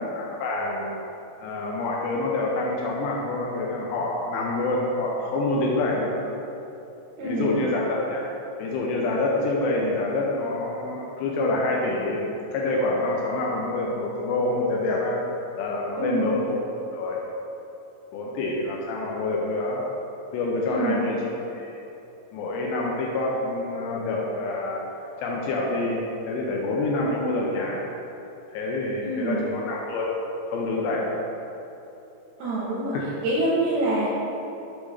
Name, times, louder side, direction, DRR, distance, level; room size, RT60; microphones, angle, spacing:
voice 1, 0.1-0.9 1.4-6.3 7.2-8.3 8.6-15.2 15.6-16.6 16.9-17.2 18.1-19.8 20.3-21.2 21.5-21.8 22.3-24.8 25.2-27.9 28.5-30.1 30.5-31.2 32.9-33.0, left 2 dB, 85° left, -2 dB, 2.6 m, -27 dB
voice 2, 7.2-7.6 16.0-16.3 20.7-21.1 29.0-29.4 32.4-33.0 33.2-34.1, right 2 dB, 80° right, -6 dB, 2.2 m, -26 dB
7.4 x 5.1 x 3.4 m, 3.0 s
omnidirectional pair, 5.4 m